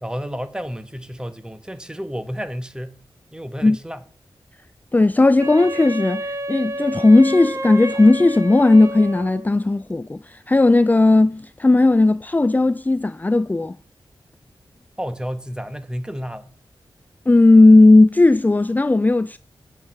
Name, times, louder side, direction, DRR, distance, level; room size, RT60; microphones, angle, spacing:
voice 1, 0.0-3.0 3.3-4.0 15.0-16.5, equal, 10° right, 1.2 m, -31 dB
voice 2, 4.9-13.8 17.3-19.4, left 2 dB, 20° left, 0.4 m, -15 dB
Wind instrument woodwind instrument, 5.4-9.5, equal, 35° right, 1.3 m, -30 dB
8.6 x 6.4 x 5.8 m
cardioid pair, 50°, 9 cm